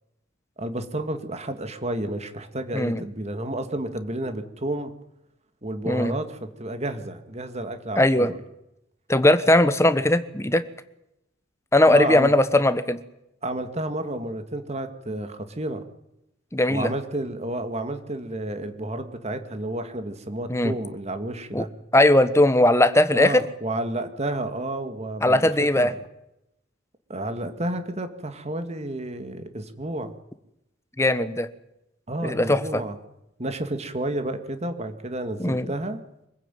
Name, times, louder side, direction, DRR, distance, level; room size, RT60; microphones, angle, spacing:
voice 1, 0.6-4.9 5.6-8.4 11.9-12.3 13.4-15.8 16.7-21.7 23.1-25.4 25.8-26.0 27.1-30.1 32.1-33.0 33.4-36.0, right 1 dB, 35° right, 8 dB, 2.2 m, -31 dB
voice 2, 2.7-3.0 5.9-6.1 8.0-8.3 9.1-10.6 11.7-13.0 16.5-16.9 20.5-20.7 21.5-21.6 21.9-23.4 25.2-25.9 31.0-31.5 32.2-32.8 35.4-35.7, left 1 dB, 15° left, 12 dB, 1.2 m, -19 dB
25.0 x 16.0 x 9.3 m, 0.86 s
head